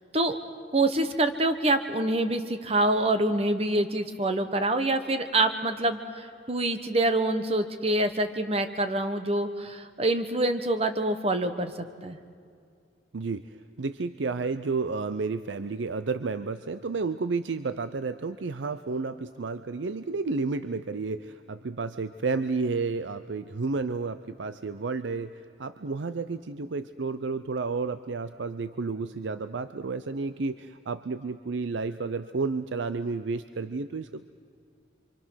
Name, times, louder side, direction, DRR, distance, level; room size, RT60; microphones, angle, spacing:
voice 1, 0.7-11.7 12.0-12.2, right 2 dB, 35° right, 8 dB, 1.1 m, -26 dB
voice 2, 13.1-34.2, right 4 dB, 85° right, 11 dB, 0.6 m, -31 dB
28.0 x 25.0 x 6.3 m, 2.3 s
head